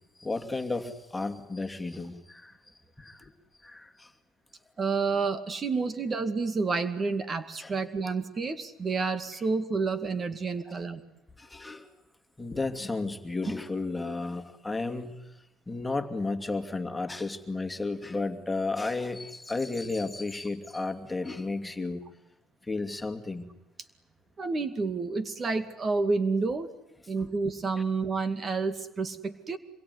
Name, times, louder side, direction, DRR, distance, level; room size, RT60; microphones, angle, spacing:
voice 1, 0.2-2.5 3.0-3.2 3.6-3.9 7.6-7.7 11.4-11.9 12.4-15.2 15.7-22.0 22.7-23.5 27.2-27.3, left 3 dB, 10° left, 6 dB, 2.6 m, -33 dB
voice 2, 4.8-11.0 24.4-26.7 27.1-29.6, right 4 dB, 35° right, 9 dB, 2.3 m, -29 dB
27.0 x 22.5 x 9.8 m, 0.90 s
cardioid pair, 105°, 0 cm